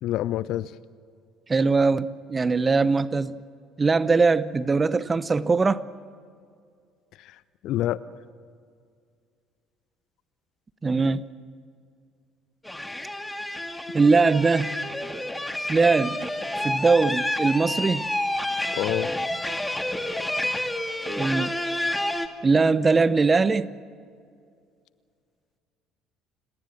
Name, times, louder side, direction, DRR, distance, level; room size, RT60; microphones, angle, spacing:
voice 1, 0.0-0.7 7.2-8.0 18.7-19.1, left 13 dB, 55° left, 0.6 m, -28 dB
voice 2, 1.5-3.4 3.8-5.8 10.8-11.2 13.9-14.8 15.7-16.2 16.6-18.1 21.2-21.5 22.4-23.7, right 4 dB, 25° right, 0.9 m, -21 dB
sound 1, 12.6-22.3, left 1 dB, 10° left, 2.1 m, -29 dB
29.5 x 18.0 x 7.3 m
figure-of-eight pair, 55°, 0 cm